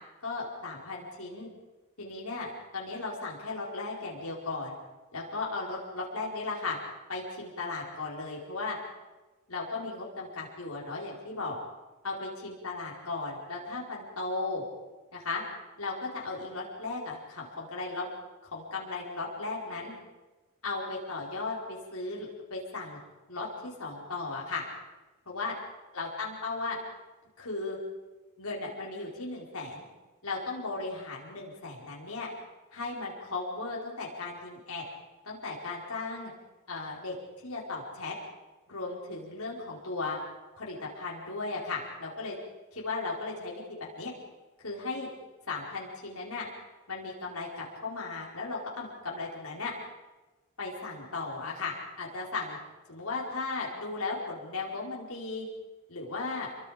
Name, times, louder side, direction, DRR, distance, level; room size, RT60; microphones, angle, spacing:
voice 1, 0.2-1.5 2.0-4.7 5.1-6.8 7.1-8.8 9.5-11.6 12.0-14.6 15.1-15.4 15.8-18.1 18.4-19.9 20.6-23.0 23.3-24.6 25.3-25.6 25.9-26.8 27.4-27.8 28.4-29.8 30.2-32.3 32.7-34.8 35.2-36.3 36.7-37.1 37.4-38.1 38.7-40.2 40.5-42.3 42.7-44.1 44.6-45.1 45.5-46.5 46.9-49.7 50.6-52.6 52.9-55.4 55.9-56.5, left 3 dB, 90° left, -4 dB, 4.9 m, -36 dB
29.0 x 23.5 x 5.2 m, 1.2 s
head